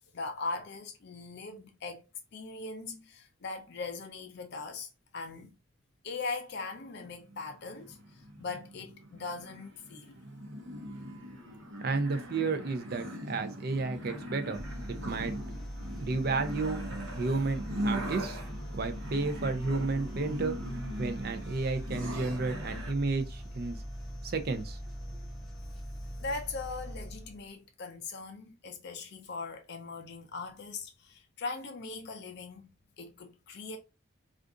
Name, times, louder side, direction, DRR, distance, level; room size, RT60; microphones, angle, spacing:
voice 1, 0.1-2.0 2.3-5.5 6.0-10.1 26.2-32.7 33.0-33.8, left 3 dB, 55° left, 0.5 m, -40 dB
sound 1, 7.3-22.9, equal, 70° right, 0.9 m, -40 dB
voice 2, 11.8-15.3 16.0-16.9 17.2-18.4 18.7-20.6 21.0-23.8 24.2-24.8, right 3 dB, 50° right, 0.5 m, -32 dB
sound 2, 14.5-27.5, equal, ahead, 1.0 m, -42 dB
2.5 x 2.4 x 3.6 m
head